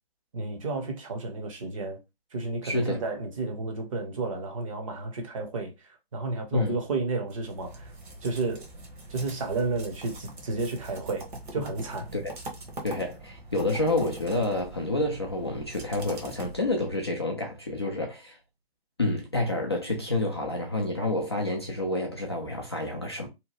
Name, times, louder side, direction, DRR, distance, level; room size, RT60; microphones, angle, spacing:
voice 1, 0.3-2.0 2.3-7.9 8.2-8.7 9.1-12.1, right 3 dB, 35° right, 0.7 m, -32 dB
voice 2, 2.6-3.0 6.5-6.8 12.1-12.3 12.8-18.4 19.0-23.3, left 2 dB, 25° left, 0.3 m, -29 dB
sound 1, 7.3-17.0, right 2 dB, 50° right, 1.0 m, -43 dB
2.8 x 2.1 x 3.0 m
figure-of-eight pair, 145°, 31 cm